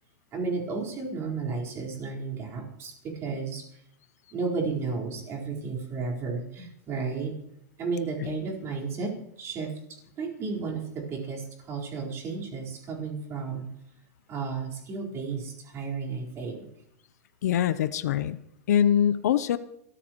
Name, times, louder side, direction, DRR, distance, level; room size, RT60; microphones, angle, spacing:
voice 1, 0.3-3.7 4.3-7.4 7.8-13.7 14.3-16.7, right 4 dB, 30° right, -2 dB, 4.4 m, -33 dB
voice 2, 17.4-18.4 18.7-19.6, left 10 dB, 75° left, 14 dB, 0.8 m, -24 dB
25.5 x 14.0 x 3.1 m, 0.79 s
hypercardioid pair, 135°, 9 cm